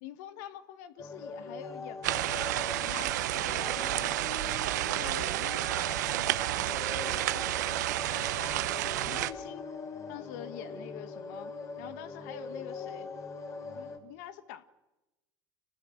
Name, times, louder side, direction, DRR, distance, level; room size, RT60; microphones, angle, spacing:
voice 1, 0.0-4.4 4.7-6.4 6.9-9.7 10.1-13.1 13.7-14.6, left 11 dB, 75° left, 11 dB, 1.5 m, -46 dB
sound 1, 1.0-14.0, left 4 dB, 35° left, 4.2 m, -42 dB
sound 2, 2.0-9.3, right 15 dB, 85° right, 1.0 m, -31 dB
26.5 x 19.0 x 7.9 m, 1.0 s
supercardioid pair, 95°, 9 cm